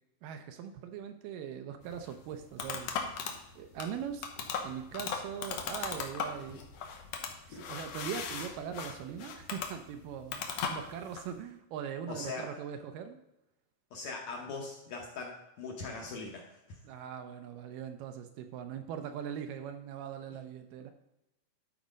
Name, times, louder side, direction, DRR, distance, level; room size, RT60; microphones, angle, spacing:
voice 1, 0.2-2.9 3.6-4.3 4.6-6.6 7.5-13.2 16.8-20.9, right 8 dB, 80° right, 7 dB, 2.2 m, -41 dB
sound 1, 1.8-11.3, left 6 dB, 90° left, 1.4 m, -39 dB
voice 2, 12.1-12.4 13.9-16.8, left 3 dB, 70° left, 0 dB, 1.8 m, -41 dB
11.5 x 4.2 x 5.1 m, 0.89 s
omnidirectional pair, 4.2 m